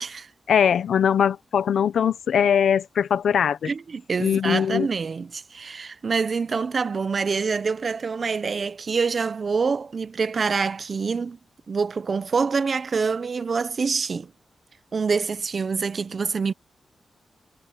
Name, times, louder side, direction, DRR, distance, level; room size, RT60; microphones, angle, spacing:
voice 1, 0.5-3.7 4.2-4.9, left 8 dB, 85° left, 1.0 m, -21 dB
voice 2, 3.6-11.4 11.7-14.3 14.9-16.5, right 5 dB, 55° right, 0.8 m, -26 dB
cardioid pair, 70°, 0 cm